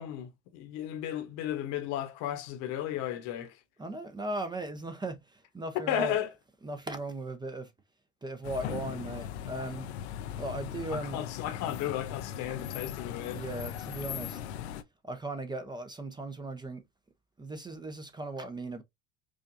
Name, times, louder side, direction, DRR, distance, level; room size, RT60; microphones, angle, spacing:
voice 1, 0.0-3.6 5.7-6.3 10.9-13.4, left 11 dB, 60° left, 1.1 m, -34 dB
voice 2, 3.8-6.2 6.6-7.7 8.2-9.9 10.4-11.3 13.3-14.4 15.0-16.8 17.4-18.8, right 2 dB, 15° right, 0.6 m, -37 dB
sound 1, 8.4-14.8, left 10 dB, 75° left, 0.6 m, -39 dB
4.9 x 2.4 x 2.6 m
hypercardioid pair, 80°, 33 cm